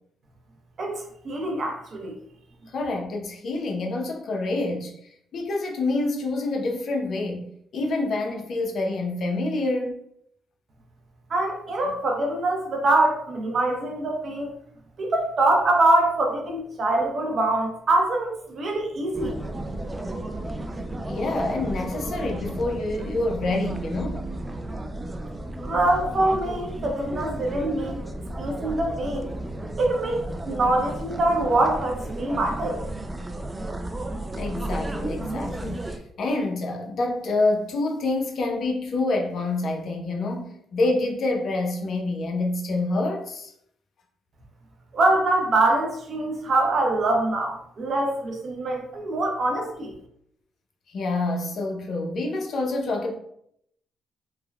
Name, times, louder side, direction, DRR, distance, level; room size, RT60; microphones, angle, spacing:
voice 1, 0.8-2.1 11.3-14.5 15.0-19.4 25.6-28.0 28.4-29.3 29.8-32.8 44.9-49.9, right 2 dB, 50° right, 0.7 m, -24 dB
voice 2, 2.7-10.0 21.1-24.3 26.0-26.1 34.4-43.5 50.9-53.1, left 2 dB, 60° left, 0.6 m, -27 dB
sound 1, 19.1-36.0, right 1 dB, 20° right, 0.3 m, -33 dB
3.4 x 2.1 x 2.3 m
cardioid pair, 90°, 0 cm